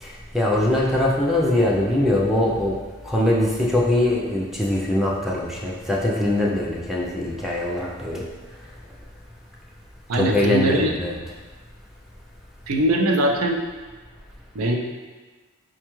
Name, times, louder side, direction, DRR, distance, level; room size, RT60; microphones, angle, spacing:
voice 1, 0.0-2.7 3.0-8.2 10.1-11.2, left 1 dB, ahead, -5 dB, 0.4 m, -22 dB
voice 2, 10.1-11.0 12.7-13.6 14.5-14.8, right 1 dB, 90° right, 1 dB, 0.5 m, -21 dB
4.6 x 2.3 x 3.0 m, 1.4 s
head